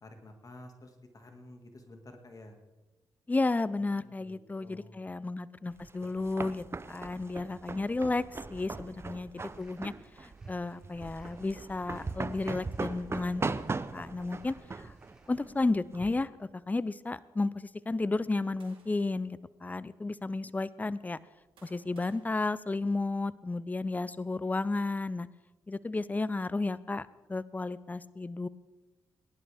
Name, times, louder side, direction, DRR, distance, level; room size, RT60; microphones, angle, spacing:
voice 1, 0.0-2.6 3.9-5.1, left 1 dB, 40° left, 5 dB, 1.9 m, -52 dB
voice 2, 3.3-8.2 8.5-9.9 10.2-13.4 13.9-14.9 15.3-21.2 21.6-25.3 25.7-28.5, left 3 dB, 20° left, 19 dB, 0.5 m, -33 dB
sound 1, 5.8-16.2, right 3 dB, 30° right, 0.6 m, -39 dB
sound 2, 9.4-15.4, right 1 dB, 5° right, 3.0 m, -65 dB
sound 3, 18.6-19.3 20.0-20.1 21.0-23.4, right 5 dB, 75° right, 2.2 m, -64 dB
18.5 x 11.0 x 3.5 m, 1.1 s
supercardioid pair, 55°, 9 cm